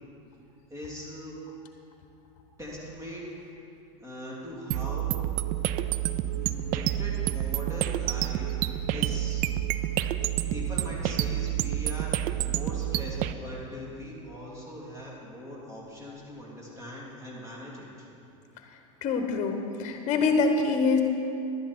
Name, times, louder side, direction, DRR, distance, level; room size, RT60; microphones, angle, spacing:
voice 1, 0.7-1.4 2.6-3.2 4.0-5.1 6.3-8.6 8.9-9.5 10.5-18.1, left 1 dB, 15° right, -4 dB, 2.9 m, -41 dB
sound 1, 4.7-13.3, right 12 dB, 50° right, 0.4 m, -29 dB
voice 2, 19.0-21.0, left 4 dB, 45° left, 5 dB, 1.1 m, -25 dB
11.5 x 10.5 x 4.3 m, 2.7 s
supercardioid pair, 115°, 18 cm